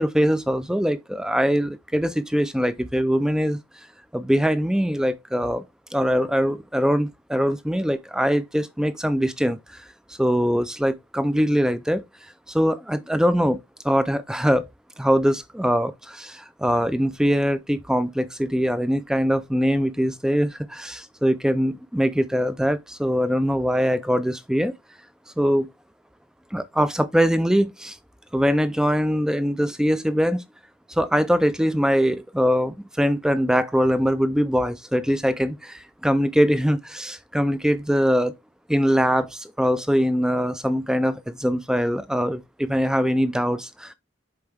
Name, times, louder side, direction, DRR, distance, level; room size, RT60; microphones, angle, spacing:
voice 1, 0.0-3.6 4.1-5.6 5.9-9.8 10.2-12.0 12.5-14.7 15.0-24.7 25.4-25.7 26.5-28.0 28.3-30.4 30.9-38.3 38.7-43.9, equal, 5° right, 0.3 m, -22 dB
7.0 x 4.4 x 3.3 m
head